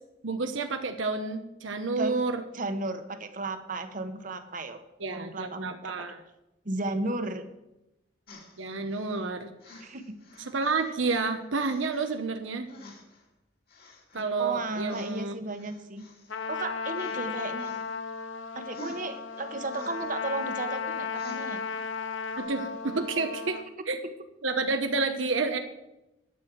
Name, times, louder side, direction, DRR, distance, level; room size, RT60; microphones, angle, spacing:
voice 1, 0.2-2.4 5.0-6.2 8.6-9.5 10.5-12.7 14.1-15.4 22.4-23.6 23.9-24.0 24.4-25.6, right 3 dB, 90° right, 6 dB, 1.0 m, -29 dB
voice 2, 2.5-4.8 5.1-5.9 6.6-7.4 9.8-10.0 14.4-16.1 16.5-17.7 18.5-21.6, right 2 dB, 45° right, 8 dB, 1.2 m, -34 dB
sound 1, 8.3-9.2 9.6-11.3 11.6-12.2 12.7-13.3 13.7-14.3 14.8-16.6 16.9-17.2 17.6-18.3 18.7-20.5 21.1-21.8 22.4-22.5, left 1 dB, 50° left, 2.4 m, -50 dB
Trumpet, 16.3-23.6, left 5 dB, 90° left, 0.9 m, -35 dB
11.5 x 6.4 x 9.2 m, 0.94 s
head